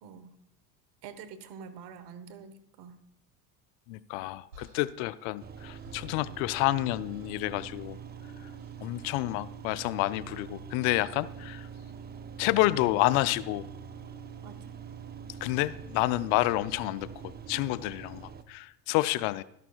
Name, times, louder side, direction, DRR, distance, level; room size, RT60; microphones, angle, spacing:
voice 1, 0.0-0.3 1.0-3.0 14.4-14.6 17.5-17.7, right 6 dB, 60° right, 11 dB, 1.2 m, -46 dB
voice 2, 3.9-8.0 8.8-11.7 12.4-13.7 15.4-19.4, left 17 dB, 60° left, 17 dB, 0.5 m, -29 dB
sound 1, 4.5-6.8 7.1-7.5 8.5-8.8 10.2-10.5, equal, 80° right, 2.7 m, -55 dB
sound 2, 5.4-18.4, right 6 dB, 20° right, 0.6 m, -44 dB
12.5 x 11.0 x 2.3 m, 0.77 s
hypercardioid pair, 80°, 47 cm